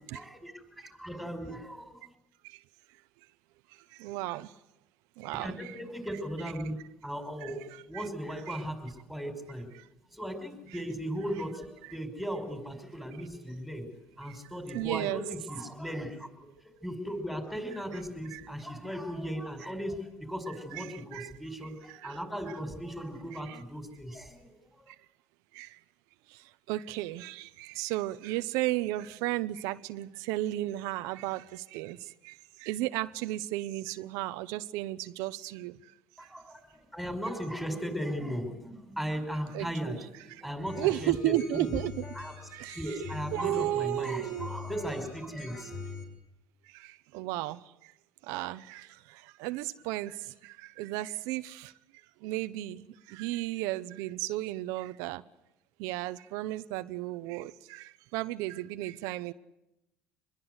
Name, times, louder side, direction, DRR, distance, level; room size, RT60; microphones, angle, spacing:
voice 1, 0.1-2.1 5.4-6.8 7.0-9.7 10.1-13.9 14.2-16.3 16.6-24.9 36.2-41.7 42.1-42.3 42.7-46.0, equal, ahead, 5.5 m, -37 dB
voice 2, 3.7-4.6 5.2-5.7 7.4-8.1 8.5-8.6 9.7-9.9 10.7-10.8 11.8-12.0 14.2-14.4 14.7-15.2 18.3-18.4 20.5-21.3 21.9-22.2 22.5-22.6 23.3-23.6 24.9-25.0 25.5-25.8 26.3-35.9 36.2-36.3 39.5-40.0 40.3-40.4 40.8-42.0 42.5-44.5 46.6-47.9 48.2-55.2 55.8-59.3, right 16 dB, 85° right, 0.9 m, -35 dB
sound 1, 40.7-46.0, left 4 dB, 80° left, 7.7 m, -43 dB
26.0 x 21.5 x 8.1 m
cardioid pair, 135°, 6 cm